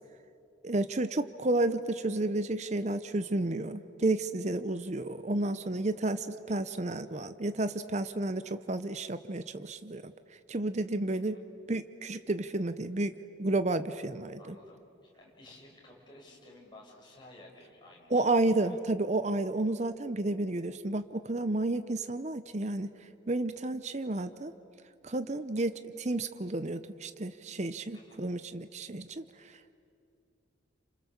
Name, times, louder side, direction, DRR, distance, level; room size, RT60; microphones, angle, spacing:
voice 1, 0.6-10.1 10.5-11.4 11.7-13.1 13.4-14.5 18.1-22.9 23.3-24.5 25.0-29.2, right 2 dB, 35° right, 11 dB, 0.7 m, -31 dB
voice 2, 14.4-18.8 27.9-28.2, left 1 dB, 25° left, -2 dB, 5.7 m, -55 dB
29.5 x 27.5 x 7.2 m, 2.5 s
head